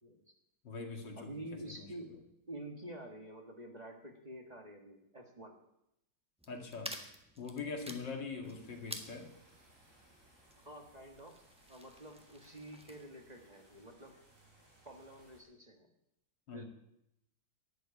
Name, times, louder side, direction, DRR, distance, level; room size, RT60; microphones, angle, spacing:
voice 1, 0.6-1.3 1.7-1.9 6.5-7.0 7.4-9.3 16.5-16.6, left 4 dB, 90° left, 2 dB, 2.7 m, -42 dB
voice 2, 1.1-2.1 2.5-5.6 10.6-14.2 14.8-15.9 16.5-16.6, right 1 dB, 25° right, 2 dB, 1.6 m, -49 dB
sound 1, 6.4-13.1, equal, 5° right, 1.1 m, -51 dB
sound 2, 8.4-15.4, right 1 dB, 45° right, 4.3 m, -65 dB
11.5 x 8.5 x 9.5 m, 0.83 s
omnidirectional pair, 1.9 m